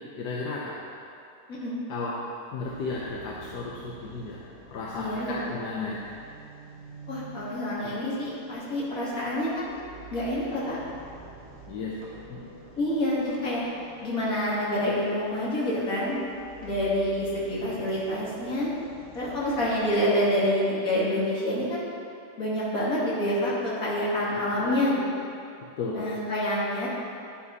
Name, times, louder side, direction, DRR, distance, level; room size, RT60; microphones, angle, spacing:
voice 1, 0.2-0.8 1.9-2.2 2.5-4.4 4.7-6.1 7.8-8.0 11.7-12.5 16.7-16.9 24.2-24.8 25.8-26.1, left 3 dB, 75° left, -4 dB, 1.5 m, -34 dB
sound 1, 2.6-19.9, right 2 dB, 5° right, 2.8 m, -48 dB
voice 2, 4.9-5.5 7.1-9.7 10.1-10.8 12.8-13.6 14.0-16.2 16.6-18.7 19.1-21.9 22.4-25.0 25.9-26.9, left 1 dB, 55° left, -7 dB, 2.9 m, -27 dB
10.0 x 10.0 x 4.2 m, 2.5 s
omnidirectional pair, 1.8 m